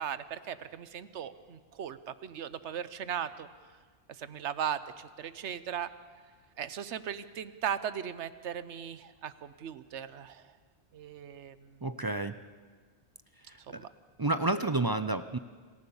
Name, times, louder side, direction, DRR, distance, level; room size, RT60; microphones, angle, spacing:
voice 1, 0.0-3.5 4.2-5.9 6.6-10.4 10.9-11.8 13.7-13.9, right 9 dB, 85° right, 14 dB, 1.1 m, -38 dB
voice 2, 11.8-12.3 13.7-13.8 14.2-15.4, right 2 dB, 35° right, 11 dB, 0.4 m, -30 dB
27.5 x 14.5 x 7.1 m, 1.6 s
omnidirectional pair, 1.2 m